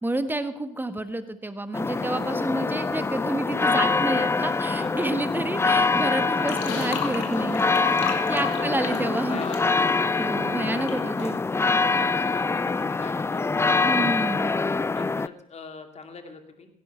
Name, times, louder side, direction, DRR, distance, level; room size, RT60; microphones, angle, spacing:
voice 1, 0.0-7.6 8.3-9.4 10.2-11.4 13.8-14.5, right 1 dB, 10° right, 10 dB, 1.6 m, -29 dB
sound 1, 1.7-15.3, left 4 dB, 15° left, 0.4 m, -25 dB
voice 2, 4.6-5.2 6.1-6.7 8.3-11.4 11.9-14.0 14.9-16.7, left 4 dB, 35° left, 6 dB, 2.6 m, -42 dB
sound 2, 6.5-10.9 11.2-11.4, left 7 dB, 70° left, 2.5 m, -35 dB
16.5 x 11.0 x 5.7 m, 0.79 s
hypercardioid pair, 55°, 19 cm